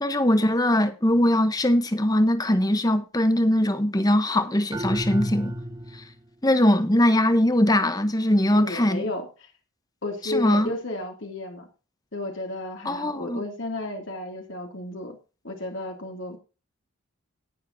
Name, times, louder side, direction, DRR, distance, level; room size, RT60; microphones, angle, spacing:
voice 1, 0.0-5.5 5.9-6.0 6.4-9.1 10.2-10.7 12.8-13.4, left 1 dB, 15° left, 1.0 m, -21 dB
sound 1, 4.7-6.2, equal, 15° right, 0.9 m, -30 dB
voice 2, 8.5-9.5 10.0-11.7 12.1-15.2 15.4-16.4, left 2 dB, 60° left, 2.7 m, -33 dB
18.0 x 7.3 x 2.8 m
head